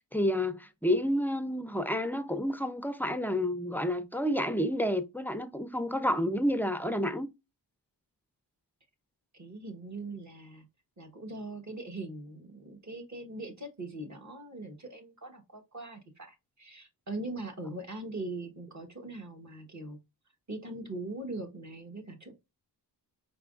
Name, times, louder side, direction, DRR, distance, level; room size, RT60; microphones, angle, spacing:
voice 1, 0.1-7.3, equal, 5° left, 0.3 m, -30 dB
voice 2, 9.3-10.7 11.0-20.0 20.5-22.3, right 2 dB, 40° right, 1.1 m, -41 dB
5.2 x 3.4 x 2.4 m
wide cardioid pair, 110°, 44 cm